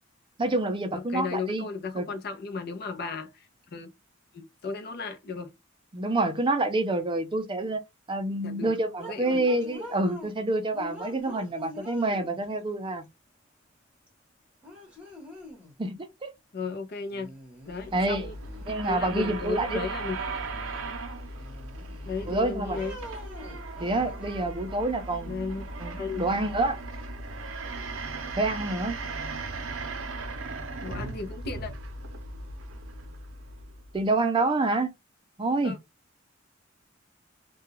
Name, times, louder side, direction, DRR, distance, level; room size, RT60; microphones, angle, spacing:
voice 1, 0.4-1.7 1.9-2.1 5.9-7.8 8.1-13.0 15.8-16.3 17.9-18.3 18.7-19.8 22.3-22.8 23.8-25.3 25.8-26.8 28.4-29.0 33.9-34.9 35.4-35.8, right 2 dB, 25° right, 0.4 m, -27 dB
voice 2, 0.9-3.9 4.3-5.5 8.4-8.7 9.1-9.4 16.5-17.3 17.7-18.3 18.9-20.2 22.0-23.0 25.2-25.6 26.0-26.4 30.8-31.7 35.6-35.8, left 4 dB, 55° left, 0.6 m, -35 dB
sound 1, 9.0-10.4 10.7-12.6 14.1-14.2 14.6-15.8 17.1-18.1 18.4-19.6 20.1-21.0 21.4-22.3 22.7-24.5, left 1 dB, 5° right, 1.0 m, -45 dB
sound 2, 17.7-34.0, right 2 dB, 80° right, 0.6 m, -37 dB
2.3 x 2.2 x 3.0 m
head